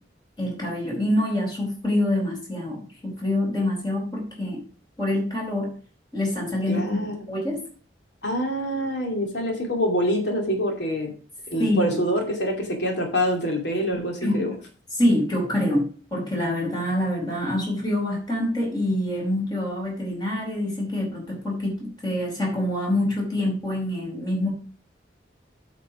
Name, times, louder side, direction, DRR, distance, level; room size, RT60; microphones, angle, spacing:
voice 1, 0.4-4.6 5.0-5.8 6.1-7.0 7.3-7.7 11.6-12.0 14.2-14.5 15.0-24.5, left 1 dB, 25° left, -2 dB, 4.7 m, -26 dB
voice 2, 6.7-7.2 8.2-11.1 11.5-14.5, equal, 85° left, 1 dB, 2.5 m, -25 dB
8.5 x 5.7 x 6.2 m, 0.40 s
head